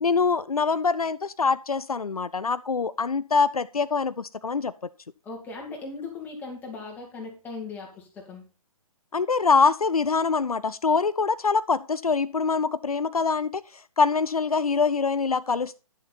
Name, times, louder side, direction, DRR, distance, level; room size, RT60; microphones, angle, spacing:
voice 1, 0.0-4.7 9.1-13.6 14.0-15.8, left 4 dB, 75° left, 0.5 m, -24 dB
voice 2, 5.2-8.4, left 4 dB, 10° left, 2.4 m, -38 dB
10.5 x 6.7 x 4.2 m
figure-of-eight pair, 135°, 19 cm